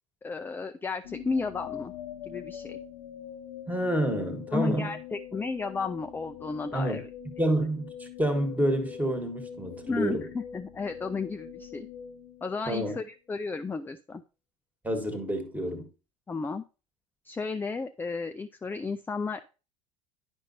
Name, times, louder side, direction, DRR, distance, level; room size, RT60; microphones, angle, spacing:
voice 1, 0.2-1.9 2.2-2.8 4.5-7.1 9.8-11.9 12.4-14.2 16.3-16.6 17.2-19.4, left 4 dB, 10° left, 0.3 m, -33 dB
sound 1, 1.0-13.1, left 9 dB, 80° left, 0.7 m, -44 dB
voice 2, 3.7-4.9 6.7-7.0 7.4-10.3 12.7-13.0 14.8-15.9, right 1 dB, 10° right, 1.4 m, -28 dB
9.7 x 5.2 x 2.7 m
hypercardioid pair, 75°, 17 cm